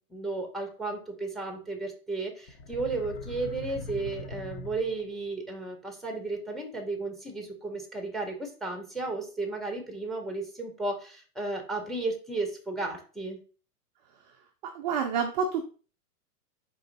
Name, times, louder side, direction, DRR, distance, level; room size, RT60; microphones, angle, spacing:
voice 1, 0.1-13.4, right 3 dB, ahead, 3 dB, 0.7 m, -34 dB
sound 1, 2.5-5.3, left 2 dB, 45° left, 0.8 m, -41 dB
voice 2, 14.6-15.6, right 6 dB, 30° right, 3 dB, 0.4 m, -28 dB
4.2 x 3.0 x 3.9 m, 0.38 s
hypercardioid pair, 130°, 47 cm